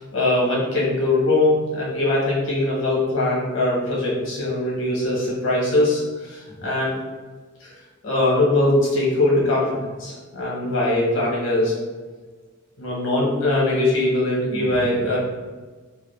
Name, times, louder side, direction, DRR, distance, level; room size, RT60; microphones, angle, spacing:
voice 1, 0.1-6.0 6.6-6.9 8.0-11.7 12.8-15.2, left 2 dB, 90° left, -5 dB, 0.9 m, -21 dB
3.4 x 2.2 x 2.3 m, 1.4 s
head